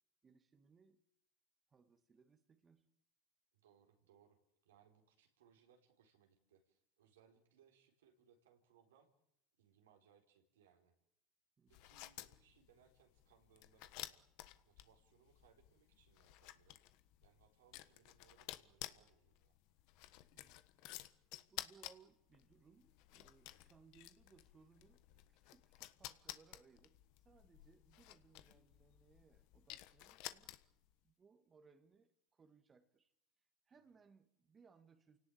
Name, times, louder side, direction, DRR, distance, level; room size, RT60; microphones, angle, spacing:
voice 1, 0.2-1.0 1.7-2.9 11.6-11.7 20.3-20.6 21.5-30.5 31.0-33.1 33.6-35.2, right 5 dB, 25° right, 2.0 m, -68 dB
voice 2, 3.5-4.4 4.6-9.1 9.5-10.9 11.7-14.2 14.6-16.8 17.2-19.5, right 8 dB, 90° right, 4.4 m, -71 dB
sound 1, 11.7-30.9, left 16 dB, 65° left, 1.4 m, -54 dB
28.5 x 18.0 x 8.8 m
supercardioid pair, 100°, 0 cm